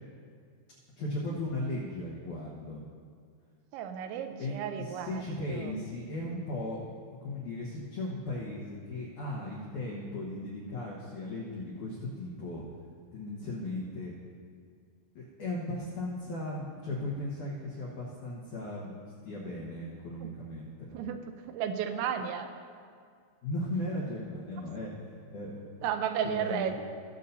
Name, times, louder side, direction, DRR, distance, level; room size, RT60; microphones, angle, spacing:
voice 1, 1.0-2.8 4.4-6.8 7.2-12.6 13.1-14.1 15.2-21.0 23.4-24.9 25.3-25.9 26.2-26.7, left 1 dB, 80° left, -5 dB, 1.8 m, -37 dB
voice 2, 3.7-5.2 5.5-5.7 20.2-20.3 20.9-22.5 25.8-26.7, right 8 dB, 90° right, 7 dB, 2.9 m, -33 dB
19.5 x 6.9 x 2.7 m, 2.1 s
omnidirectional pair, 5.2 m